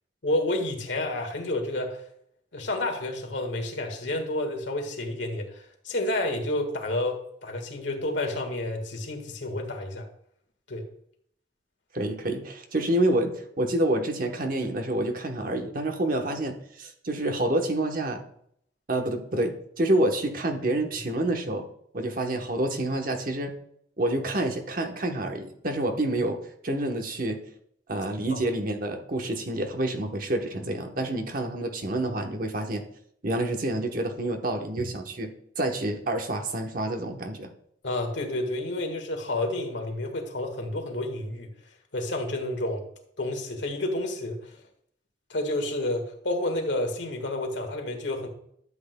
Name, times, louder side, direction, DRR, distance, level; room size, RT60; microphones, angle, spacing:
voice 1, 0.2-2.0 2.5-10.1 10.7-10.8 28.3-28.4 37.8-41.5 41.9-42.8 43.2-44.6 45.3-48.3, left 1 dB, 80° left, 4 dB, 1.7 m, -30 dB
voice 2, 11.9-18.2 18.9-21.7 21.9-23.5 24.0-26.4 26.6-27.4 27.9-32.8 33.2-37.5, right 1 dB, 50° right, 4 dB, 1.0 m, -28 dB
12.0 x 7.8 x 2.2 m, 0.67 s
head